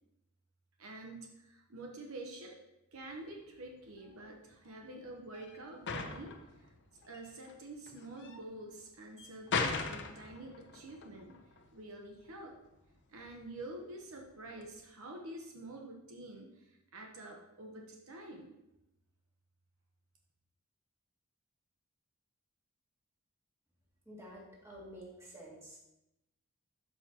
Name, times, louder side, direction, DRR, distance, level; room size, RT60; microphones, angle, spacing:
voice 1, 0.8-2.6 2.9-6.7 7.1-11.4 11.7-12.6 13.1-18.5, right 2 dB, 65° right, 1 dB, 0.9 m, -48 dB
sound 1, 3.0-14.8, left 4 dB, 55° left, 0.8 m, -41 dB
voice 2, 24.1-25.8, equal, 10° right, -5 dB, 2.3 m, -50 dB
12.0 x 5.7 x 2.9 m, 0.90 s
head